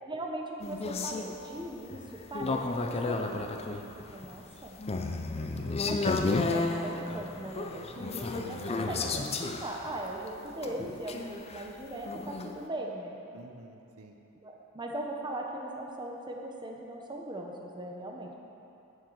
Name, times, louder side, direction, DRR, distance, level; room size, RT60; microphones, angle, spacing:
voice 1, 0.0-4.8 5.8-6.0 6.3-13.2 14.3-18.3, right 1 dB, 20° right, 0 dB, 0.9 m, -39 dB
sound 1, 0.6-12.5, left 3 dB, 30° left, 0.5 m, -33 dB
voice 2, 5.3-5.9 13.3-14.2, right 2 dB, 75° right, 3 dB, 0.8 m, -51 dB
7.3 x 6.6 x 7.9 m, 2.9 s
head